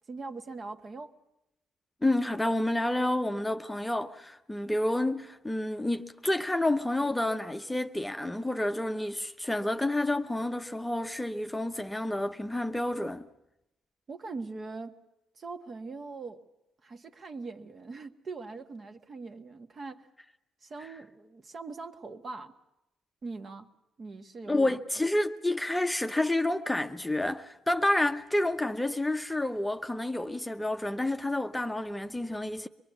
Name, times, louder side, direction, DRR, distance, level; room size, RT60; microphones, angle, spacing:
voice 1, 0.1-1.1 14.1-15.0 15.4-16.4 16.8-20.1 20.6-22.5 23.2-23.7 24.0-24.8, right 3 dB, 45° right, 1.6 m, -41 dB
voice 2, 2.0-13.2 20.8-20.9 24.5-32.7, left 1 dB, 10° left, 0.8 m, -29 dB
24.0 x 21.0 x 8.3 m
cardioid pair, 90°, 0 cm